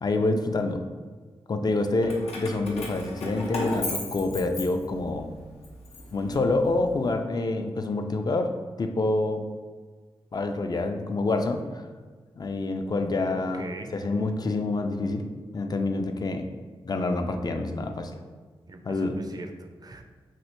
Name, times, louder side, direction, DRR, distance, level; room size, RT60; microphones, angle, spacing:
voice 1, 0.0-0.8 1.5-5.3 6.1-8.5 8.8-9.4 10.3-11.8 12.4-13.6 13.9-15.2 15.5-16.5 16.8-18.1 18.9-19.1, left 2 dB, 40° left, 6 dB, 0.4 m, -27 dB
Keys jangling, 2.0-5.2 5.6-6.9, left 2 dB, 85° left, 0.6 m, -35 dB
voice 2, 13.3-13.9 18.7-20.0, right 2 dB, 40° right, 5 dB, 0.4 m, -40 dB
3.2 x 2.5 x 2.9 m, 1.5 s
cardioid pair, 45°, 10 cm